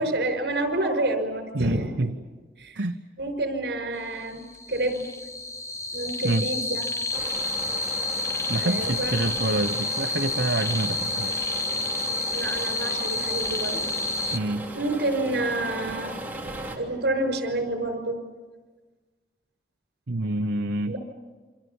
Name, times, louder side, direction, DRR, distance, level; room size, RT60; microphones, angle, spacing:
voice 1, 0.0-2.1 2.6-2.8 3.2-4.4 4.7-5.1 5.9-6.8 8.6-9.5 12.3-13.8 14.7-16.2 16.8-18.2 20.9-21.0, right 2 dB, 70° right, 7 dB, 5.7 m, -28 dB
voice 2, 1.5-2.1 2.8-3.0 6.2-6.5 8.5-11.6 14.3-14.7 20.1-21.0, right 2 dB, 85° right, 6 dB, 0.9 m, -27 dB
sound 1, 4.3-14.4, left 2 dB, 15° left, 0.8 m, -29 dB
sound 2, 7.1-16.8, right 1 dB, 10° right, 3.2 m, -37 dB
28.5 x 25.5 x 7.2 m, 1.3 s
head